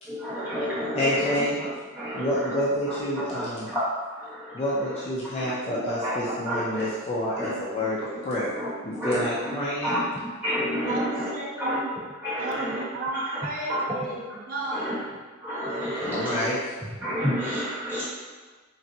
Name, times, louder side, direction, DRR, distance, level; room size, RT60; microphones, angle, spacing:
voice 1, 0.1-1.7 1.9-2.6 2.9-3.0 3.3-4.9 5.4-6.1 6.5-6.9 7.4-7.5 8.5-9.3 9.8-10.0 10.4-11.3 11.6-11.8 12.2-12.8 13.2-13.4 13.7-13.8 14.7-14.9 15.4-16.4 17.0-18.0, equal, 10° right, -11 dB, 1.1 m, -30 dB
voice 2, 1.0-1.6 2.1-3.7 4.5-8.5 8.8-10.0 16.0-16.6, left 1 dB, 30° left, -7 dB, 0.4 m, -28 dB
voice 3, 10.8-11.9 12.4-15.0, right 2 dB, 40° right, -3 dB, 0.4 m, -33 dB
3.9 x 2.2 x 2.7 m, 1.3 s
head